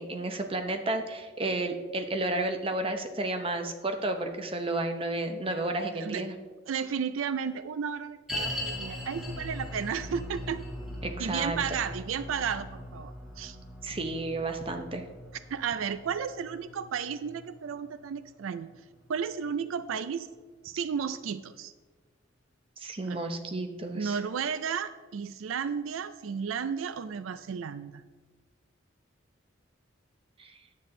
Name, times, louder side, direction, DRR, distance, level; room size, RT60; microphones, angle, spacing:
voice 1, 0.0-6.3 11.0-11.6 13.8-15.0 22.8-24.2 30.4-30.5, right 2 dB, 25° right, 6 dB, 0.8 m, -32 dB
voice 2, 5.9-6.3 6.7-10.6 11.2-13.6 15.5-18.7 19.1-20.3 20.6-21.7 23.0-23.2 23.9-28.0, right 7 dB, 85° right, 14 dB, 0.4 m, -33 dB
sound 1, 8.3-19.6 19.8-19.9 20.6-20.7, left 1 dB, ahead, 1.3 m, -40 dB
10.0 x 7.6 x 3.8 m, 1.3 s
head